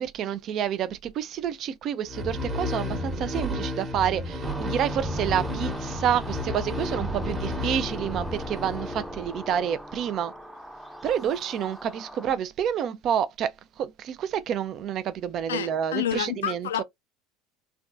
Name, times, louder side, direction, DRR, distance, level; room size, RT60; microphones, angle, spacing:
voice 1, 0.0-10.3 11.0-13.5 13.8-16.8, right 9 dB, 50° right, 0.3 m, -29 dB
sound 1, 2.1-9.5, left 1 dB, 35° right, 1.0 m, -32 dB
sound 2, 4.4-12.4, equal, ahead, 0.5 m, -38 dB
voice 2, 15.5-16.8, left 10 dB, 80° left, 0.3 m, -29 dB
3.4 x 2.2 x 2.4 m
hypercardioid pair, 75°, 0 cm